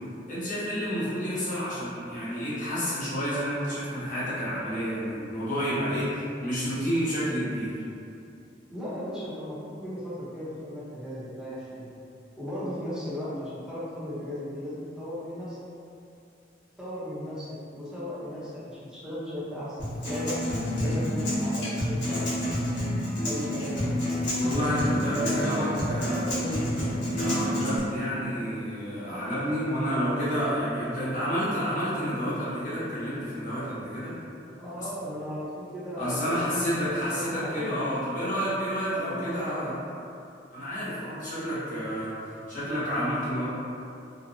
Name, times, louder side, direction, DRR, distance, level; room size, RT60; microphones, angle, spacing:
voice 1, 0.3-7.7 24.4-26.3 27.2-34.1 34.8-34.9 35.9-39.7 40.5-42.1 42.5-43.4, equal, 45° left, -11 dB, 0.9 m, -30 dB
voice 2, 8.7-9.6 9.8-11.9 12.4-15.6 16.8-20.4 20.8-22.4 23.2-24.0 25.1-26.8 34.6-37.7 38.9-39.7, equal, 5° right, -11 dB, 0.7 m, -36 dB
Acoustic guitar, 19.8-27.8, left 1 dB, 70° left, 1.0 m, -29 dB
2.7 x 2.0 x 2.7 m, 2.6 s
head